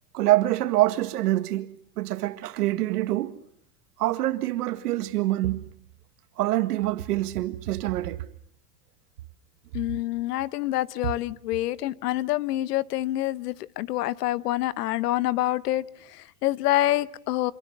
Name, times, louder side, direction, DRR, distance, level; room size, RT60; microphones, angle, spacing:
voice 1, 0.1-3.4 4.0-5.7 6.4-8.2, right 15 dB, 85° right, 1.9 m, -25 dB
voice 2, 9.7-17.5, left 15 dB, 85° left, 1.1 m, -27 dB
26.5 x 23.0 x 7.3 m
supercardioid pair, 170°, 46 cm